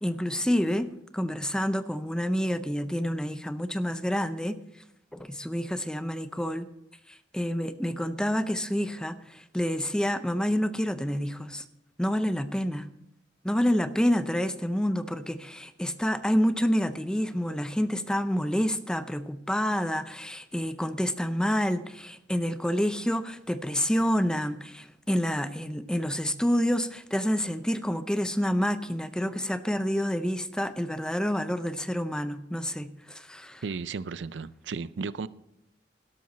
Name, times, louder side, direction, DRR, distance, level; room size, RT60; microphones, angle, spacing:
voice 1, 0.0-4.6 5.1-6.7 7.1-11.6 12.0-12.9 13.4-33.6, equal, 5° left, 0.5 m, -28 dB
voice 2, 33.6-35.3, right 4 dB, 90° right, 0.5 m, -34 dB
12.0 x 12.0 x 4.2 m
head